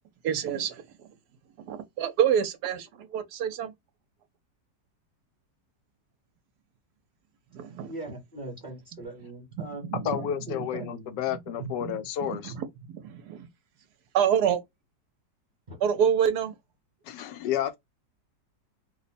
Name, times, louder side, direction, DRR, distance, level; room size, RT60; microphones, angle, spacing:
voice 1, 0.2-0.8 1.7-3.7 7.5-7.9 9.5-10.3 10.5-10.8 11.3-12.0 12.3-13.5 14.1-14.6 15.8-16.6, right 8 dB, 70° right, 1.0 m, -28 dB
voice 2, 7.9-11.2 15.7-15.8, right 2 dB, 30° right, 1.3 m, -41 dB
voice 3, 10.0-12.5 17.0-17.8, left 10 dB, 80° left, 1.2 m, -31 dB
2.8 x 2.1 x 4.0 m
omnidirectional pair, 1.9 m